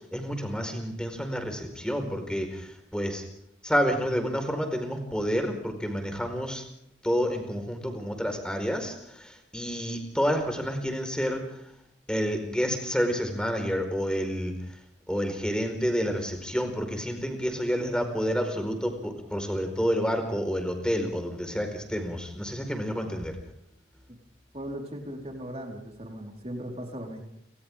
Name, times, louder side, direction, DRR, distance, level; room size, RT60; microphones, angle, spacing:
voice 1, 0.1-3.2 3.6-6.6 7.0-11.4 12.1-14.5 15.1-23.3, equal, 5° left, 5 dB, 4.7 m, -29 dB
voice 2, 24.5-27.3, equal, 35° right, 1 dB, 4.6 m, -38 dB
30.0 x 26.0 x 3.7 m, 0.74 s
head